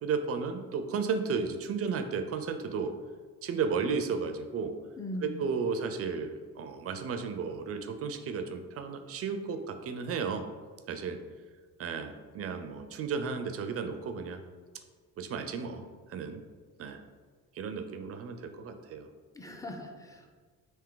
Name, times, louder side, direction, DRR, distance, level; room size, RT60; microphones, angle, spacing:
voice 1, 0.0-2.9 3.4-4.7 5.2-10.4 10.9-11.2 11.8-14.4 15.2-15.8 16.1-16.4 16.8-17.0 17.6-19.1 19.5-19.6, right 5 dB, 45° right, 8 dB, 0.4 m, -33 dB
voice 2, 5.0-5.5 19.3-20.3, left 1 dB, 10° left, 2 dB, 0.5 m, -40 dB
3.5 x 2.6 x 3.7 m, 1.5 s
cardioid pair, 90°, 33 cm